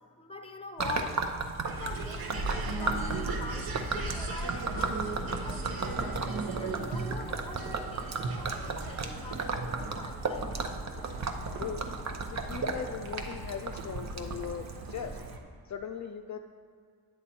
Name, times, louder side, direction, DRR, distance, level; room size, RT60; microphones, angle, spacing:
voice 1, 0.2-1.2 1.7-6.1 6.6-10.7, left 4 dB, 15° left, 7 dB, 0.7 m, -44 dB
Gurgling / Liquid, 0.8-15.4, right 4 dB, 45° right, 0.8 m, -36 dB
sound 1, 1.7-15.4, right 3 dB, 65° right, 1.0 m, -38 dB
voice 2, 12.3-15.2 15.6-16.4, left 7 dB, 50° left, 4 dB, 0.4 m, -39 dB
9.7 x 7.4 x 4.3 m, 2.1 s
cardioid pair, 95°, 39 cm